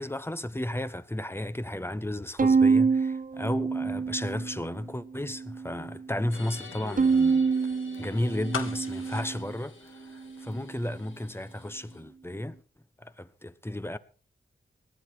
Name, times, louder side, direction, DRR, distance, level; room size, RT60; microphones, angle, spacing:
voice 1, 0.0-7.5 8.0-9.8 10.1-12.5 13.0-14.0, left 1 dB, 10° left, 1.0 m, -33 dB
Bowed string instrument, 2.4-4.8 5.2-6.0 7.0-9.5, right 5 dB, 40° right, 0.8 m, -26 dB
sound 1, 6.3-12.0, left 4 dB, 70° left, 2.3 m, -49 dB
sound 2, 8.5-10.5 10.8-10.9, left 6 dB, 85° left, 1.2 m, -38 dB
18.0 x 11.5 x 4.6 m
cardioid pair, 50°, 20 cm